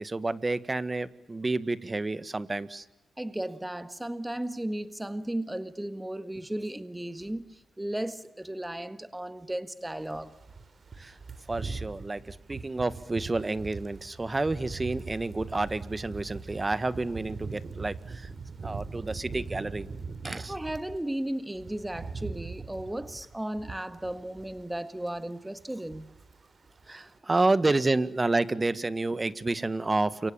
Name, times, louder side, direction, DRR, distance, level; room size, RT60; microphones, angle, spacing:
voice 1, 0.0-2.8 11.0-11.2 11.5-18.3 18.6-19.9 20.2-20.5 26.9-30.3, right 2 dB, 25° right, 1.7 m, -29 dB
voice 2, 3.2-10.4 20.5-26.1, right 1 dB, 10° right, 1.7 m, -35 dB
sound 1, 10.1-21.0 21.3-24.8 25.0-25.3 25.6-26.4 26.7-26.9, right 4 dB, 50° right, 3.3 m, -41 dB
29.5 x 24.5 x 7.2 m
cardioid pair, 60°, 0 cm